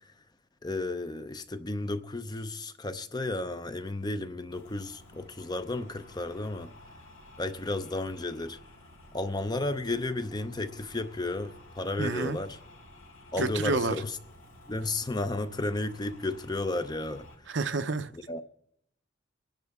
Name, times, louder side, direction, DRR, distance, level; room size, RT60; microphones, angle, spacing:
voice 1, 0.6-6.7 7.4-8.6 9.1-12.6 13.3-14.1 14.7-17.3 18.1-18.4, left 2 dB, 20° left, 0.6 m, -33 dB
sound 1, 4.5-17.4, left 1 dB, 85° left, 4.1 m, -53 dB
voice 2, 12.0-12.4 13.4-13.9 17.5-18.1, right 3 dB, 60° right, 0.7 m, -29 dB
25.0 x 10.5 x 3.6 m
head